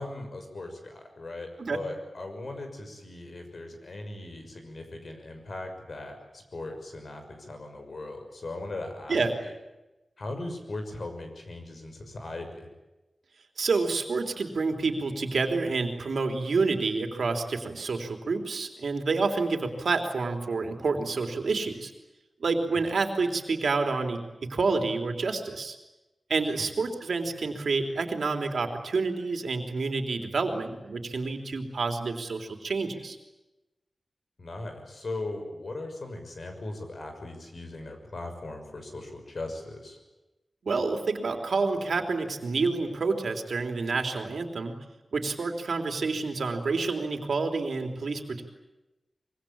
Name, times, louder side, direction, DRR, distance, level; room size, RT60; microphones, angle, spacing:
voice 1, 0.0-9.2 9.4-9.5 10.2-12.7 22.7-22.8 26.6-26.7 34.4-40.0, left 2 dB, 55° left, 5 dB, 6.3 m, -39 dB
voice 2, 13.6-21.9 22.4-25.8 26.3-33.2 40.6-44.7 45.1-48.4, right 4 dB, 80° right, 5 dB, 3.3 m, -28 dB
25.0 x 23.0 x 8.8 m, 1.0 s
wide cardioid pair, 110°, 0 cm